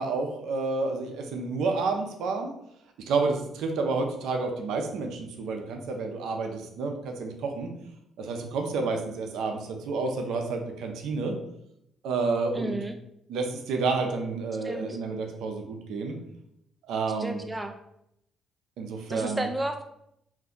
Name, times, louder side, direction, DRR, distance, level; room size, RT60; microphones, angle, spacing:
voice 1, 0.0-2.5 3.1-7.7 8.2-11.3 12.0-12.8 13.3-16.2 16.9-17.4 18.8-19.5, right 4 dB, 85° right, 3 dB, 0.5 m, -30 dB
voice 2, 12.5-13.0 14.6-15.0 17.2-17.7 19.1-19.8, right 1 dB, 15° right, 6 dB, 0.4 m, -32 dB
2.5 x 2.2 x 3.7 m, 0.77 s
cardioid pair, 90°, 0 cm